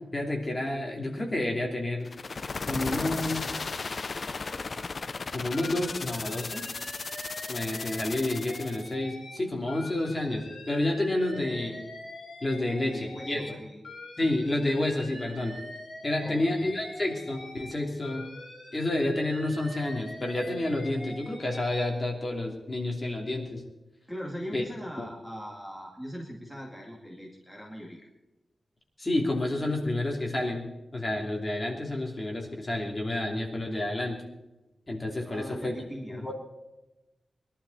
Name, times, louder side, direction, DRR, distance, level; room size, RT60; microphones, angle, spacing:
voice 1, 0.1-2.1 2.6-3.6 5.3-6.7 7.5-11.8 12.4-13.5 14.2-15.6 16.0-18.3 18.7-23.6 24.5-24.6 25.0-25.1 29.0-34.2 34.9-35.7 36.1-36.3, left 1 dB, 20° left, 0 dB, 2.9 m, -30 dB
Helicopter passing by, 2.1-8.9, left 4 dB, 40° left, 0.5 m, -35 dB
Alarm, 5.5-9.4 9.7-13.5 13.8-17.7 18.0-21.9, left 1 dB, 60° left, 6.0 m, -44 dB
voice 2, 12.5-13.8 16.2-16.7 24.1-28.1 35.2-36.3, equal, ahead, -3 dB, 2.2 m, -41 dB
21.5 x 12.0 x 4.2 m, 1.0 s
wide cardioid pair, 165°, 0 cm